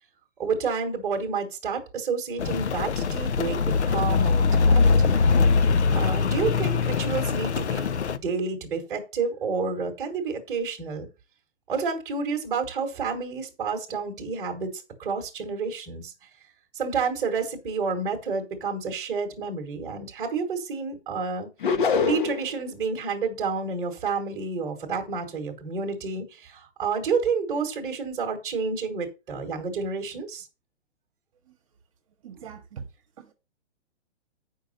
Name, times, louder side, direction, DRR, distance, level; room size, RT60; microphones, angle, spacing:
voice 1, 0.4-5.2 5.9-7.9 8.2-11.1 11.7-16.1 16.7-21.5 22.1-30.5, right 5 dB, 10° right, 1.3 m, -30 dB
Rain, 2.4-8.2, left 4 dB, 70° left, 0.9 m, -22 dB
sound 1, 21.6-22.5, left 5 dB, 45° left, 1.0 m, -23 dB
voice 2, 32.2-32.9 33.2-33.3, right 6 dB, 30° right, 1.3 m, -42 dB
8.8 x 5.5 x 5.3 m
hypercardioid pair, 175°, 35 cm